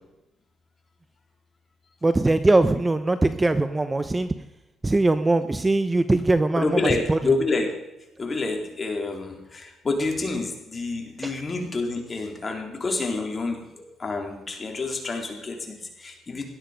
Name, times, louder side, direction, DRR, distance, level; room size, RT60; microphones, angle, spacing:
voice 1, 2.0-4.3 4.8-7.2 11.2-11.4, right 2 dB, 20° right, 11 dB, 0.8 m, -21 dB
voice 2, 6.5-7.7 8.2-16.4, left 3 dB, 30° left, 2 dB, 3.9 m, -28 dB
17.0 x 11.5 x 5.2 m, 0.93 s
cardioid pair, 90°, 0 cm